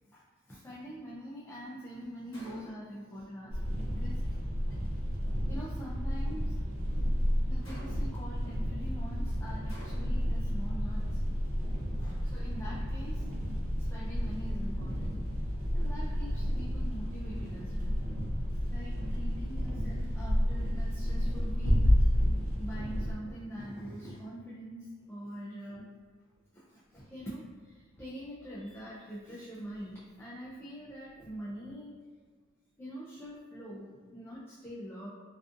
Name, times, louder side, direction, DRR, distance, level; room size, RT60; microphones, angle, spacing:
voice 1, 0.1-4.2 5.5-6.5 7.5-11.2 12.0-13.2 13.9-15.2 15.7-18.0 18.7-22.1 22.6-25.9 26.5-31.9 32.8-35.1, equal, 10° left, -8 dB, 0.3 m, -44 dB
Gunshot gunfire, 2.3-3.0 7.6-8.3 9.7-10.4, left 1 dB, 70° left, 0.8 m, -51 dB
sound 1, 3.5-23.1, equal, 90° right, 0.5 m, -31 dB
2.5 x 2.3 x 2.4 m, 1.5 s
head